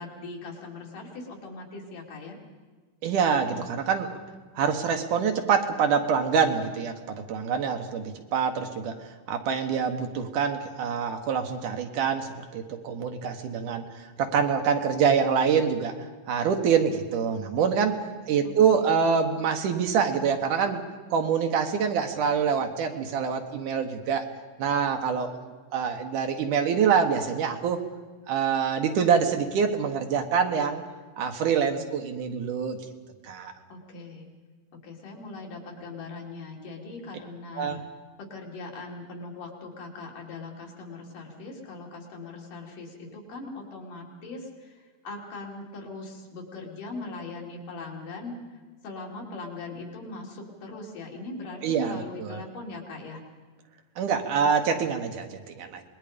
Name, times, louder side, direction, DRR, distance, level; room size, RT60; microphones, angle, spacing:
voice 1, 0.0-2.4 18.4-19.0 33.7-34.3 34.8-37.8 38.3-53.2, left 3 dB, 65° left, -1 dB, 4.6 m, -40 dB
voice 2, 3.0-4.2 4.6-9.0 9.3-18.0 18.3-20.8 21.1-24.3 24.6-27.8 28.3-30.8 31.2-32.8 33.2-33.5 37.6-37.8 51.6-52.4 54.0-55.9, right 6 dB, 70° right, 5 dB, 2.8 m, -25 dB
26.5 x 21.0 x 5.2 m, 1.4 s
omnidirectional pair, 4.0 m